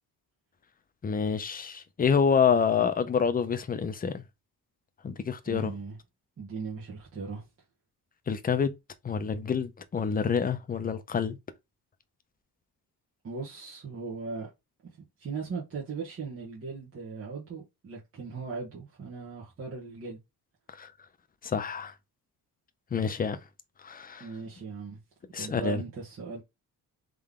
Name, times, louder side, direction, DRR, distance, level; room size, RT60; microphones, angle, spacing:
voice 1, 1.0-4.2 5.0-5.7 8.3-8.7 9.0-11.4 20.8-20.9 21.4-21.9 22.9-23.4 23.8-24.3 25.3-25.8, left 6 dB, 25° left, 0.5 m, -27 dB
voice 2, 5.4-6.0 6.4-7.5 13.2-14.5 15.2-20.2 24.2-25.0 25.4-26.4, right 4 dB, 35° right, 1.3 m, -38 dB
3.8 x 3.2 x 3.6 m
cardioid pair, 135°, 38 cm